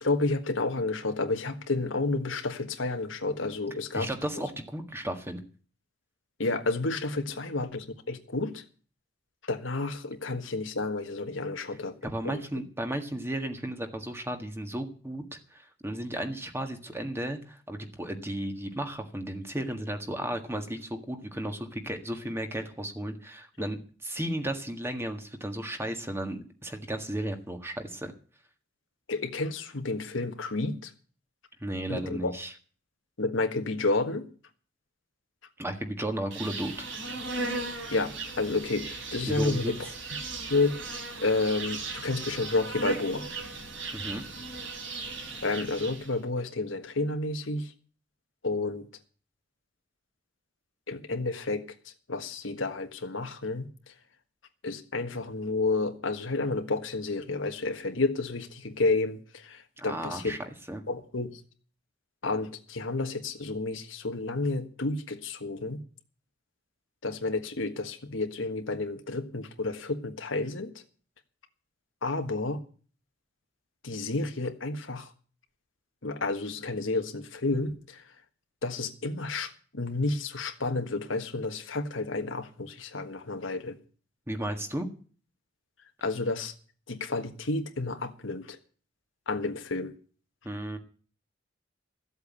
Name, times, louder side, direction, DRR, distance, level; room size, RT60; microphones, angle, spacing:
voice 1, 0.0-4.1 6.4-8.6 9.5-11.9 12.2-12.4 29.1-30.9 31.9-32.3 33.2-34.3 37.9-39.9 40.5-40.8 41.2-43.3 45.4-47.7 48.4-48.9 50.9-51.7 52.1-53.7 54.6-60.4 60.9-61.4 62.2-65.8 67.0-70.7 72.0-72.6 73.8-75.1 76.0-78.0 78.6-83.8 86.0-86.5 86.9-88.6 89.3-89.9, left 3 dB, 80° left, 1.5 m, -30 dB
voice 2, 3.9-5.4 12.0-28.1 31.6-32.5 35.6-36.9 39.2-39.7 43.9-44.2 59.8-60.4 60.7-60.8 84.3-84.9 90.4-90.8, right 1 dB, 15° right, 1.6 m, -34 dB
Insect, 36.3-46.1, right 3 dB, 75° right, 4.0 m, -37 dB
14.0 x 8.1 x 8.3 m
head